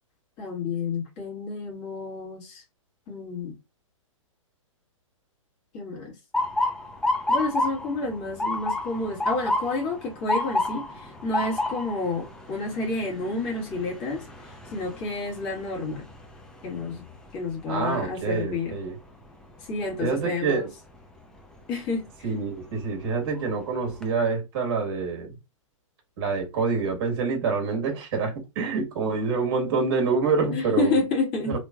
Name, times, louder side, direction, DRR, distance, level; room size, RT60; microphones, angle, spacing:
voice 1, 0.4-2.6 3.1-3.5 5.7-6.1 7.3-16.1 16.6-17.0 17.3-18.8 19.6-20.7 21.7-22.3 30.5-31.6, left 3 dB, 35° left, 1.7 m, -30 dB
Motor vehicle (road) / Siren, 6.3-18.2 18.7-19.1 19.9-20.2 22.1-22.3 22.8-22.9 23.3-24.0, left 2 dB, 5° left, 0.6 m, -30 dB
voice 2, 17.7-19.0 20.0-20.6 22.2-25.4 26.2-30.9 31.5-31.6, right 4 dB, 50° right, 1.5 m, -26 dB
3.3 x 3.0 x 2.3 m
figure-of-eight pair, 115°, 17 cm